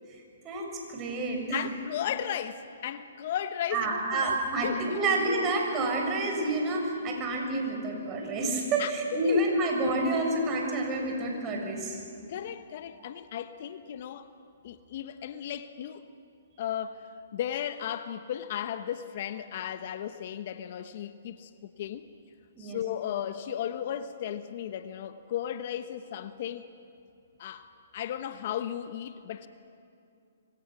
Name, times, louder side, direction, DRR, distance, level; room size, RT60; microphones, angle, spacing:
voice 1, 0.4-1.6 3.7-12.0 22.6-22.8, right 2 dB, 25° right, 1 dB, 6.4 m, -29 dB
voice 2, 1.5-4.4 4.6-5.2 8.8-9.4 12.3-14.3 14.6-16.0 16.6-21.5 21.8-22.1 22.6-26.7 27.4-29.5, left 10 dB, 50° left, 10 dB, 1.0 m, -35 dB
25.5 x 25.5 x 6.2 m, 2.5 s
hypercardioid pair, 135°, 0 cm